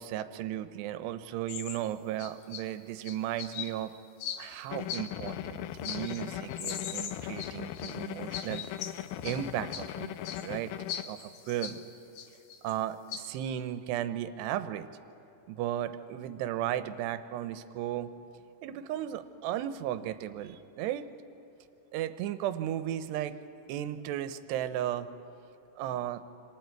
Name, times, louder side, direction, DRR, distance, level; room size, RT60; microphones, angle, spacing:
voice 1, 0.0-3.9 4.4-8.7 9.2-10.7 11.0-11.8 12.6-14.9 15.5-18.1 18.6-21.0 21.9-23.3 23.7-25.1 25.8-26.2, right 12 dB, 85° right, 11 dB, 2.8 m, -35 dB
sound 1, 1.5-1.9 2.2-2.6 3.1-3.7 4.2-4.5 4.9-5.3 5.8-6.2 6.5-8.0 8.3-9.4 9.7-9.8 10.2-10.5 10.9-11.8 12.2-12.7 13.1-13.2, left 9 dB, 70° left, 2.3 m, -39 dB
sound 2, 4.7-11.0, left 12 dB, 90° left, 2.0 m, -39 dB
27.0 x 26.0 x 4.6 m, 2.7 s
omnidirectional pair, 4.8 m